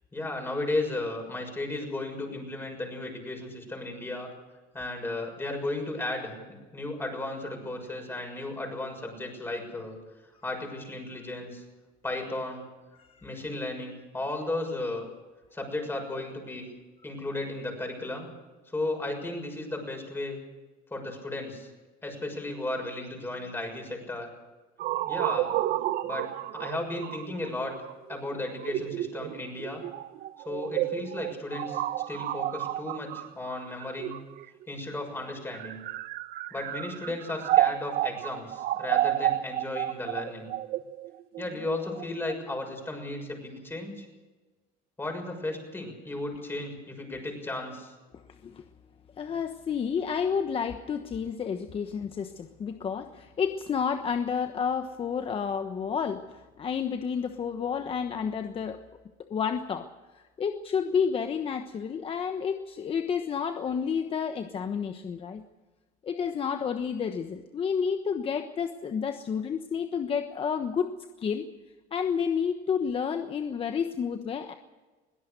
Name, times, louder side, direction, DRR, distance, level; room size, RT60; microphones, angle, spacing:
voice 1, 0.1-4.3 4.7-6.4 6.7-10.0 10.4-11.6 12.0-12.6 13.2-15.0 15.5-16.7 17.0-18.3 18.7-20.4 20.9-21.7 22.0-24.3 25.1-25.5 26.0-27.7 28.1-29.8 30.4-34.2 34.7-35.8 36.5-40.5 41.4-44.1 45.0-47.9, left 2 dB, 15° left, 3 dB, 6.7 m, -34 dB
sound 1, 24.8-34.6 35.4-42.3, right 14 dB, 55° right, 0.9 m, -31 dB
voice 2, 49.2-56.2 56.6-58.8 59.2-59.9 60.4-65.4 66.0-70.9 71.2-71.5 71.9-74.6, left 6 dB, 30° left, 7 dB, 1.2 m, -30 dB
23.0 x 17.5 x 6.8 m, 1.2 s
cardioid pair, 125°, 18 cm